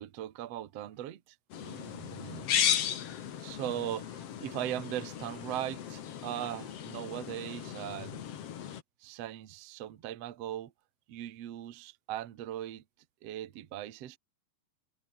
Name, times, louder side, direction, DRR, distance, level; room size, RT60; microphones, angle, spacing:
voice 1, 0.0-1.3 1.6-2.5 3.4-8.2 9.0-10.7 11.1-12.8 13.2-14.2, right 12 dB, 75° right, 1.4 m, -39 dB
sound 1, 1.5-8.8, left 9 dB, 75° left, 1.4 m, -35 dB
omnidirectional pair, 5.3 m